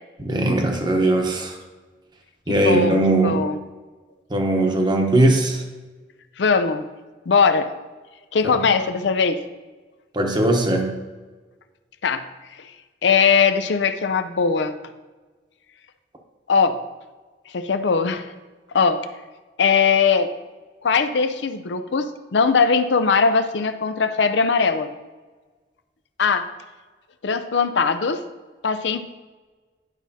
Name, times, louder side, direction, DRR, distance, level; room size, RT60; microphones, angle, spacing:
voice 1, 0.2-1.6 2.5-3.4 4.3-5.6 8.4-8.7 10.1-11.0, right 1 dB, 25° right, 2 dB, 1.0 m, -20 dB
voice 2, 2.6-3.6 6.4-6.8 7.3-7.7 8.3-9.4 12.0-12.2 13.0-14.7 16.5-16.8 17.5-18.3 18.7-19.0 19.6-20.3 20.8-24.9 26.2-26.5 27.2-28.2 28.6-29.0, left 5 dB, 75° left, 10 dB, 0.5 m, -20 dB
10.5 x 6.1 x 2.8 m, 1.3 s
head